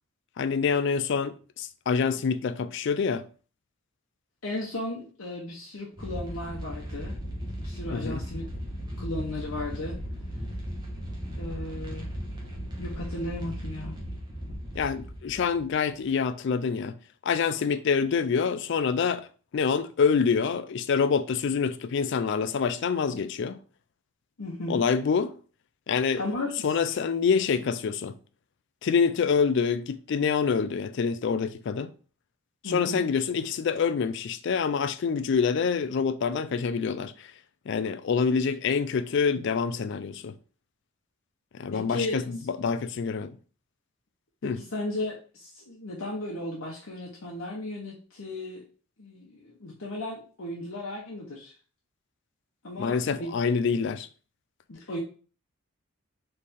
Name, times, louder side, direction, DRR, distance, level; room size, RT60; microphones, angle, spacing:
voice 1, 0.4-3.3 7.9-8.2 14.8-16.9 17.2-19.3 19.5-23.6 24.7-25.4 25.9-26.2 26.6-28.2 28.8-31.9 32.6-37.3 37.7-40.4 41.5-43.4 44.4-44.6 52.8-54.1, left 6 dB, 55° left, 0.3 m, -26 dB
voice 2, 4.4-7.2 7.6-8.5 9.0-9.9 11.4-12.1 12.8-14.0 24.4-24.8 26.2-26.5 26.9-27.0 32.6-33.0 41.7-42.3 44.4-48.7 49.0-51.5 52.6-53.3 54.7-55.0, left 1 dB, 70° left, 0.9 m, -35 dB
sound 1, 6.0-16.0, equal, 20° right, 1.1 m, -36 dB
4.2 x 3.3 x 3.6 m
head